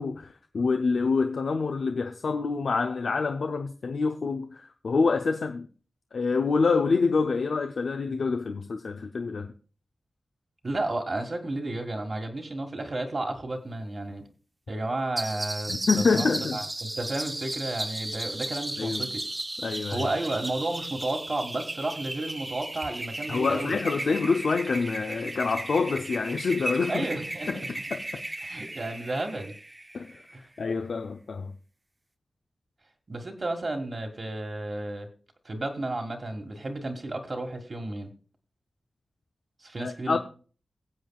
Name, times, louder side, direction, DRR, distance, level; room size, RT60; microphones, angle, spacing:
voice 1, 0.0-5.7 6.1-9.5 15.7-16.6 18.8-19.1 19.6-20.1 23.3-27.1 27.5-28.2 29.9-30.2 30.6-31.5 39.8-40.2, left 4 dB, 70° left, 0.6 m, -27 dB
voice 2, 10.6-14.2 14.7-19.2 19.9-23.8 26.9-27.7 28.4-29.5 30.3-30.4 33.1-35.1 35.4-38.1 39.6-40.2, right 2 dB, 45° right, 1.7 m, -32 dB
sound 1, 15.2-30.4, right 1 dB, 20° right, 0.6 m, -35 dB
22.5 x 7.6 x 2.3 m
wide cardioid pair, 75°, 0 cm